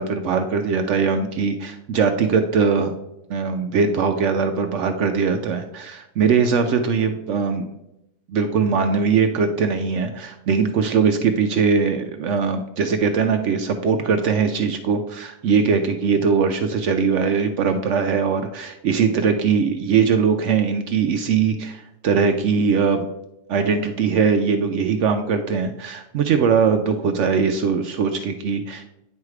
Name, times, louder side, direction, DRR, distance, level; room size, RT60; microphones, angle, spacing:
voice 1, 0.0-2.9 3.3-7.7 8.3-23.1 23.5-28.8, right 5 dB, 75° right, 7 dB, 0.7 m, -21 dB
9.5 x 3.2 x 4.7 m, 0.85 s
omnidirectional pair, 1.7 m